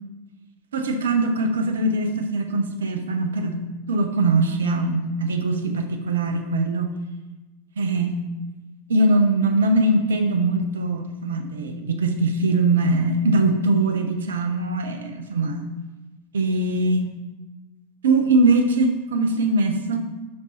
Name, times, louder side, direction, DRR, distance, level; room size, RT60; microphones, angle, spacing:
voice 1, 0.7-3.6 3.9-6.9 7.8-8.2 8.9-15.7 16.3-17.1 18.0-20.0, right 2 dB, 65° right, 6 dB, 0.7 m, -21 dB
8.5 x 6.0 x 2.8 m, 1.1 s
figure-of-eight pair, 90°, 0 cm